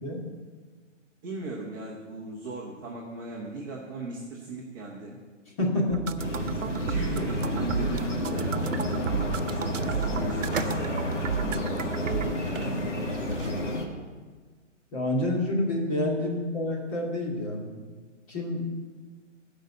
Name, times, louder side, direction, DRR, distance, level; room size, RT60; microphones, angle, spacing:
voice 1, 1.2-5.2 6.9-8.5 9.5-13.0, right 1 dB, 15° right, -5 dB, 1.0 m, -37 dB
voice 2, 5.6-6.5 14.9-17.9 18.3-18.7, left 1 dB, 25° left, -3 dB, 2.5 m, -28 dB
sound 1, 5.9-12.3, right 7 dB, 80° right, 0.8 m, -33 dB
sound 2, 6.2-13.8, left 1 dB, 70° left, 2.3 m, -31 dB
sound 3, 7.8-13.6, right 4 dB, 45° right, 1.0 m, -41 dB
15.0 x 5.3 x 6.8 m, 1.4 s
hypercardioid pair, 165°, 37 cm